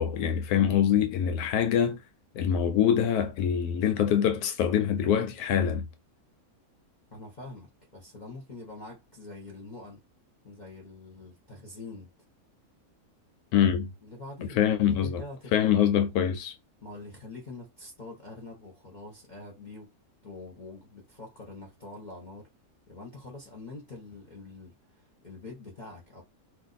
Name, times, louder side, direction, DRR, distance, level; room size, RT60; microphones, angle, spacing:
voice 1, 0.0-2.0 2.3-5.9 13.5-13.9 14.6-15.2 15.5-16.5, left 9 dB, 85° left, 1.1 m, -24 dB
voice 2, 7.1-10.0 10.4-12.1 14.0-15.9 16.8-19.9 20.2-22.5 22.9-26.2, left 2 dB, 35° left, 0.9 m, -45 dB
2.6 x 2.4 x 3.9 m
omnidirectional pair, 1.6 m